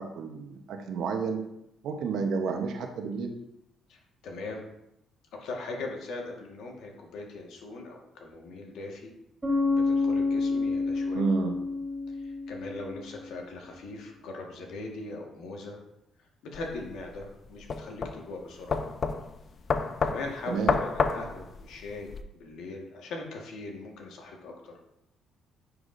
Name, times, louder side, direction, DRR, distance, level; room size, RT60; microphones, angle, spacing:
voice 1, 0.0-1.4 1.8-3.3 11.1-11.6 20.5-20.7, right 5 dB, 75° right, 5 dB, 0.9 m, -30 dB
voice 2, 3.9-4.6 5.3-9.1 9.7-11.3 12.1-15.8 16.4-18.8 20.0-24.7, left 3 dB, 80° left, 1 dB, 1.5 m, -40 dB
Bass guitar, 9.4-13.1, left 3 dB, 25° right, 2.3 m, -28 dB
sound 1, 16.5-22.2, left 5 dB, 45° left, 0.5 m, -30 dB
9.8 x 4.8 x 2.6 m, 0.82 s
cardioid pair, 85°, 0 cm